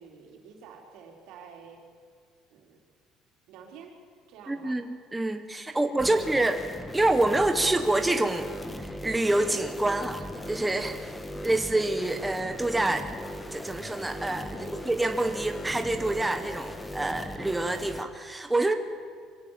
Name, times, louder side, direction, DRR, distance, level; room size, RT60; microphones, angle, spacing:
voice 1, 0.0-1.8 2.5-2.8 3.5-3.9 4.3-4.8 5.7-6.5 14.5-14.9, right 6 dB, 75° right, 2 dB, 3.9 m, -49 dB
voice 2, 4.5-6.6 6.9-11.0 11.4-13.1 13.5-18.8, right 2 dB, 10° right, 7 dB, 0.9 m, -27 dB
sound 1, 6.0-18.0, left 1 dB, 10° left, 1.4 m, -39 dB
23.5 x 17.0 x 7.4 m, 2.1 s
cardioid pair, 135°, 0 cm